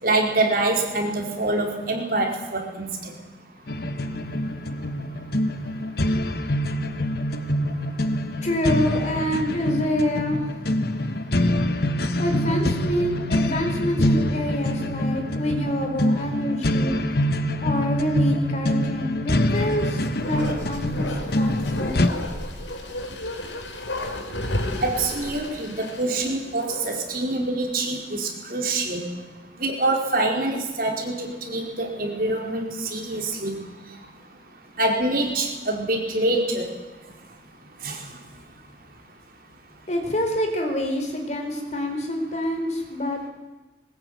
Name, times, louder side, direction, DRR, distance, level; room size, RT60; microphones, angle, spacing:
voice 1, 0.0-3.1 24.8-29.1 29.6-33.6 34.8-36.7 37.8-38.0, right 2 dB, 50° right, 2 dB, 4.7 m, -25 dB
sound 1, 3.7-22.1, left 1 dB, 55° left, 1.4 m, -25 dB
voice 2, 8.4-10.4 12.2-17.0 17.6-22.2 39.9-43.3, left 1 dB, 40° left, 4 dB, 4.5 m, -27 dB
Bark, 19.6-27.2 27.5-27.6, left 1 dB, 80° left, 3.9 m, -33 dB
21.0 x 20.0 x 9.4 m, 1.1 s
head